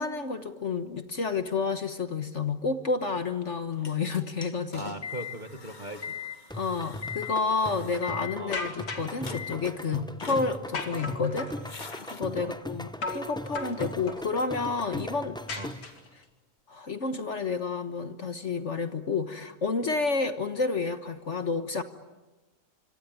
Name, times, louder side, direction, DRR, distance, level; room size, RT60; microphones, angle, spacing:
voice 1, 0.0-4.8 6.5-15.4 16.7-21.8, left 4 dB, 45° left, 9 dB, 1.5 m, -30 dB
sound 1, 3.8-8.9 9.2-9.8 10.2-11.0 11.3-12.2 13.1-13.2, left 6 dB, 30° left, 1.4 m, -41 dB
voice 2, 4.7-6.2 8.4-8.6 9.9-10.1 12.3-12.6 15.6-15.7, right 1 dB, 30° right, 8 dB, 1.7 m, -39 dB
sound 2, 6.5-16.0, left 1 dB, 5° left, 0.5 m, -39 dB
sound 3, 8.5-9.2 10.7-11.6 13.0-13.3 13.5-14.2 15.5-16.2, left 3 dB, 80° left, 3.3 m, -35 dB
25.5 x 25.0 x 9.5 m, 1.1 s
omnidirectional pair, 1.8 m